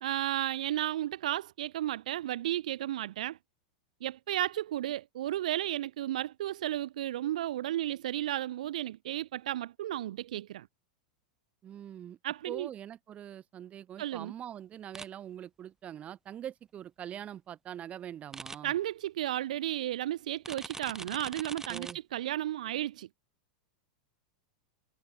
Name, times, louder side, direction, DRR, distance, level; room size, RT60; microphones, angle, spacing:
voice 1, 0.0-3.4 4.0-10.7 12.2-12.7 14.0-14.3 18.6-23.1, right 13 dB, 70° right, 2.3 m, -33 dB
voice 2, 11.6-12.2 12.5-18.7 21.7-22.0, right 10 dB, 30° right, 6.2 m, -43 dB
sound 1, 14.9-15.1 18.3-18.6 20.4-21.9, right 3 dB, 10° right, 5.1 m, -42 dB
hypercardioid pair, 100°, 4 cm